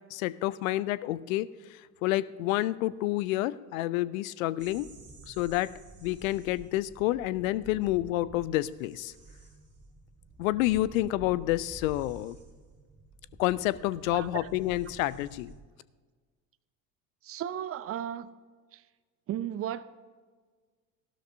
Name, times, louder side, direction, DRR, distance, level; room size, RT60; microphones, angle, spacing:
voice 1, 0.1-4.9 5.3-9.1 10.4-12.4 13.4-15.5, left 16 dB, 65° left, 0.6 m, -29 dB
sound 1, 4.6-15.6, right 3 dB, 15° right, 2.6 m, -50 dB
voice 2, 17.2-18.3 18.7-18.8 19.3-19.8, right 10 dB, 30° right, 0.6 m, -34 dB
15.5 x 12.5 x 2.6 m
hypercardioid pair, 70°, 43 cm